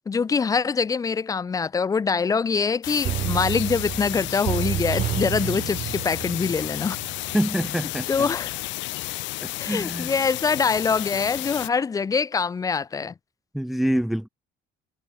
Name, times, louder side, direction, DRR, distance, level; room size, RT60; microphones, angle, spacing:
voice 1, 0.1-7.0 8.1-8.5 9.6-13.1, left 5 dB, 20° left, 0.9 m, -24 dB
sound 1, 2.8-11.7, left 20 dB, 75° left, 3.6 m, -32 dB
sound 2, 3.0-7.7 8.1-8.2, right 12 dB, 45° right, 3.7 m, -30 dB
voice 2, 7.3-8.3 9.4-10.1 13.5-14.3, equal, ahead, 0.5 m, -26 dB
cardioid pair, 175°, 19 cm